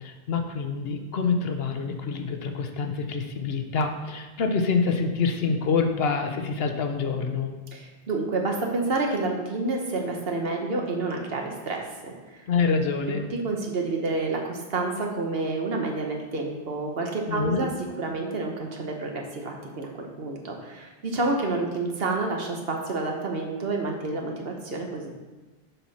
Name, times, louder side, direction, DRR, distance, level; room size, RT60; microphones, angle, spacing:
voice 1, 0.0-7.5 12.5-13.3 17.3-17.7, left 5 dB, 70° left, 5 dB, 1.0 m, -26 dB
voice 2, 7.7-12.4 13.4-17.7 18.0-25.1, right 3 dB, 65° right, 1 dB, 1.3 m, -29 dB
7.1 x 5.9 x 4.2 m, 1.3 s
omnidirectional pair, 1.1 m